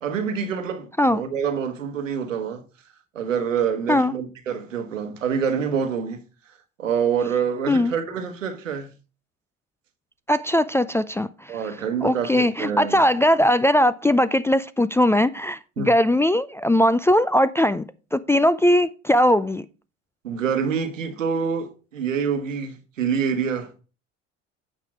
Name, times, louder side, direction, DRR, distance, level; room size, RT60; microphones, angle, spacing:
voice 1, 0.0-2.6 3.1-6.2 6.8-8.9 11.5-13.0 15.8-15.9 20.2-23.8, right 7 dB, 90° right, 1.2 m, -26 dB
voice 2, 10.3-11.3 12.0-17.8 18.1-19.6, left 1 dB, 10° left, 0.3 m, -19 dB
8.8 x 5.5 x 4.7 m
hypercardioid pair, 70°, 37 cm